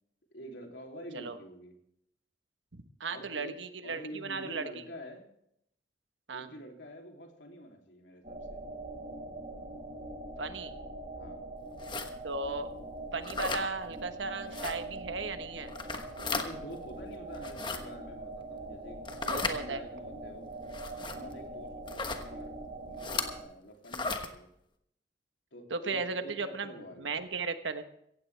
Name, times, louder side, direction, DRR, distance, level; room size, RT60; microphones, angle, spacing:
voice 1, 0.3-1.7 3.1-3.6 3.8-5.3 6.3-8.6 11.1-11.5 16.3-20.5 21.0-24.5 25.5-27.1, equal, 75° left, 2 dB, 3.1 m, -47 dB
voice 2, 2.7-4.8 6.3-6.5 10.4-10.7 12.2-12.7 13.1-15.7 19.3-19.8 25.7-26.7 27.0-27.8, right 4 dB, 85° right, 9 dB, 1.3 m, -36 dB
sound 1, 8.2-23.4, right 2 dB, 40° right, 5.1 m, -43 dB
sound 2, 11.8-12.1 13.2-13.6 14.5-14.7 15.7-16.5 17.3-17.8 19.0-19.6 20.7-21.2 21.9-22.2 23.0-23.3 23.9-24.3, left 4 dB, 25° left, 1.2 m, -35 dB
16.0 x 16.0 x 3.4 m, 0.73 s
head